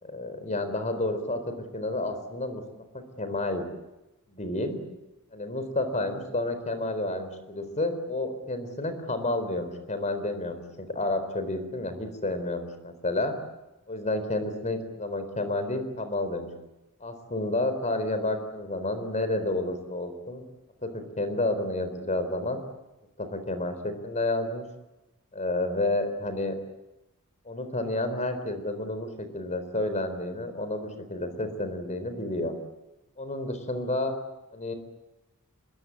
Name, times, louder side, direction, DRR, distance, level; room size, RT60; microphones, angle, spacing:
voice 1, 0.0-2.6 2.9-3.6 4.3-4.8 5.3-13.3 13.9-16.5 17.0-20.4 20.8-22.6 23.2-24.6 25.3-26.5 27.5-32.5 33.2-34.1 34.5-34.7, left 2 dB, 35° left, 9 dB, 4.2 m, -30 dB
26.5 x 21.0 x 8.7 m, 1.0 s
head